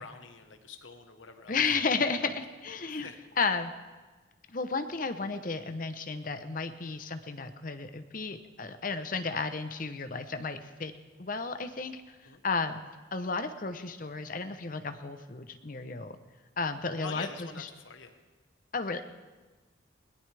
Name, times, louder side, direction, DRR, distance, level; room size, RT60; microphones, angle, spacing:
voice 1, 0.0-1.6 2.2-2.3 2.9-3.2 6.8-7.0 12.2-12.4 17.0-18.1, left 5 dB, 85° left, 6 dB, 1.3 m, -45 dB
voice 2, 1.5-3.1 3.4-3.7 4.5-10.9 11.2-12.2 12.4-12.8 13.1-16.2 16.6-17.3 17.6-17.7 18.7-19.0, left 4 dB, 45° left, 9 dB, 0.8 m, -33 dB
21.0 x 18.0 x 3.4 m, 1.3 s
head